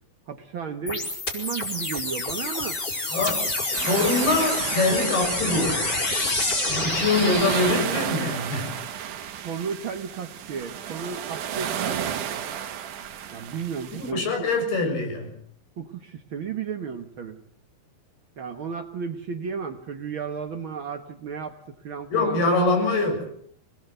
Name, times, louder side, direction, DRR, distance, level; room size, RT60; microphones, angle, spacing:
voice 1, 0.3-2.8 9.4-12.2 13.3-14.5 15.8-17.4 18.4-21.6 21.8-22.4, right 6 dB, 80° right, 6 dB, 1.1 m, -33 dB
sound 1, 0.9-7.9, left 2 dB, 25° left, 4.8 m, -28 dB
voice 2, 3.1-3.5 3.9-5.9 6.7-8.7 14.0-15.3 22.1-23.3, left 2 dB, 75° left, 5 dB, 8.9 m, -24 dB
sound 2, 3.7-14.1, right 9 dB, 60° right, 2.7 m, -33 dB
25.5 x 20.5 x 8.1 m, 0.64 s
omnidirectional pair, 4.5 m